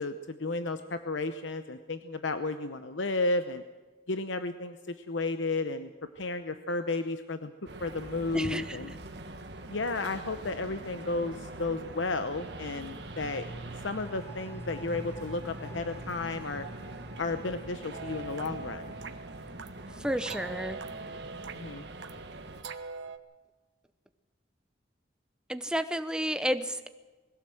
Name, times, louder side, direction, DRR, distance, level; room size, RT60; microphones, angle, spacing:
voice 1, 0.0-3.6 4.1-5.9 6.2-7.5 7.8-8.9 9.7-13.5 13.8-16.7 17.2-18.9 21.5-21.8, left 3 dB, 90° left, 9 dB, 0.8 m, -33 dB
sound 1, 7.7-22.6, right 2 dB, 65° right, 1.7 m, -44 dB
voice 2, 8.3-8.8 20.0-20.8 25.5-26.9, equal, 5° right, 10 dB, 0.8 m, -31 dB
sound 2, 12.4-21.8 22.1-22.2, right 1 dB, 15° left, 3.5 m, -48 dB
sound 3, 17.9-23.2, right 5 dB, 85° right, 1.2 m, -43 dB
21.5 x 16.5 x 7.8 m, 1.3 s
head